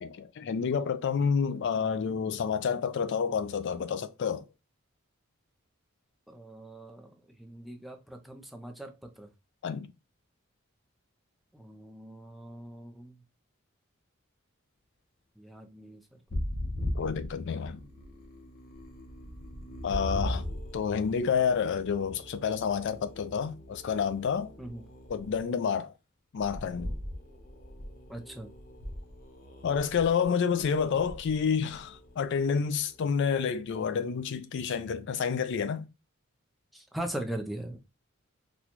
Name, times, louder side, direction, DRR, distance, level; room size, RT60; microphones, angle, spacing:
voice 1, 0.0-4.5 9.6-9.9 16.9-17.8 19.8-20.4 20.7-24.5 25.1-25.9 26.3-27.0 29.6-35.9, left 6 dB, 60° left, 0.4 m, -29 dB
voice 2, 6.3-9.3 11.5-13.1 15.4-16.0 24.6-24.8 28.1-28.5 30.9-31.0 36.7-37.8, right 1 dB, ahead, 0.5 m, -40 dB
sound 1, 16.3-25.4 26.4-34.0, left 1 dB, 45° left, 0.8 m, -40 dB
4.1 x 2.3 x 2.9 m
head